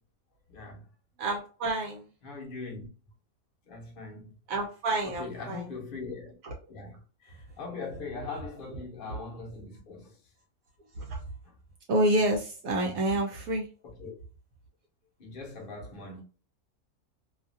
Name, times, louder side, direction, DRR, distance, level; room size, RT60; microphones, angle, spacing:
voice 1, 0.5-0.9 2.2-2.9 3.7-4.3 5.0-6.3 6.7-10.2 13.8-14.1 15.2-16.2, left 3 dB, 45° left, 0.8 m, -41 dB
voice 2, 1.2-2.1 4.5-5.6 6.4-6.5 11.0-11.2 11.9-13.7, right 1 dB, 70° right, 1.0 m, -28 dB
2.7 x 2.5 x 2.4 m
omnidirectional pair, 1.5 m